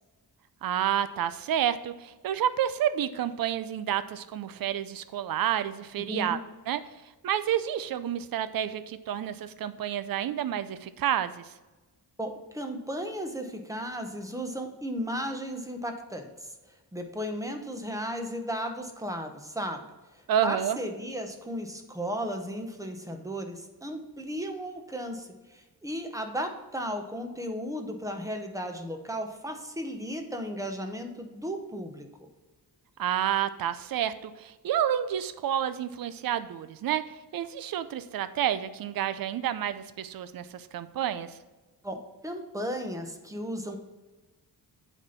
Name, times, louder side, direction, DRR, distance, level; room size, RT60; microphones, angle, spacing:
voice 1, 0.6-6.4 6.7-6.8 7.2-11.5 20.3-20.8 33.0-37.0 37.3-41.4, right 10 dB, 65° right, 13 dB, 0.6 m, -29 dB
voice 2, 6.0-6.4 12.2-16.5 16.9-19.9 20.1-32.3 41.8-43.8, equal, 10° right, 5 dB, 0.8 m, -35 dB
7.9 x 4.4 x 5.7 m, 1.2 s
wide cardioid pair, 145°, 38 cm